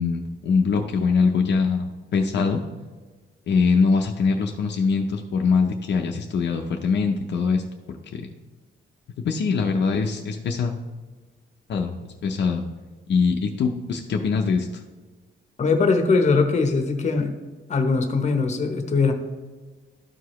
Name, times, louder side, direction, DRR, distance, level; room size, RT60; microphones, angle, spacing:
voice 1, 0.0-2.6 3.5-7.6 8.1-8.3 9.2-10.7 11.7-11.9 12.2-12.6 13.1-14.7, left 5 dB, 65° left, 2 dB, 0.6 m, -22 dB
voice 2, 15.6-17.3 17.7-19.1, left 4 dB, 35° left, 5 dB, 0.8 m, -21 dB
12.5 x 4.8 x 3.0 m, 1.4 s
wide cardioid pair, 175°, 20 cm